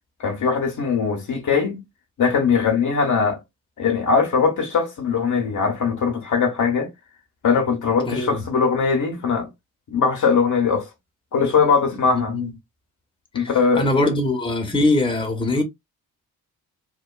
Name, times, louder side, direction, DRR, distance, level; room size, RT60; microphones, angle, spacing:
voice 1, 0.2-1.8 2.2-3.4 3.8-6.9 7.4-9.5 9.9-10.9 11.3-12.4 13.3-14.1, left 5 dB, 40° left, 0.9 m, -20 dB
voice 2, 8.1-8.4 12.1-12.5 13.3-13.5 13.8-15.6, left 2 dB, 10° left, 0.9 m, -22 dB
3.0 x 2.2 x 2.3 m
figure-of-eight pair, 40°, 46 cm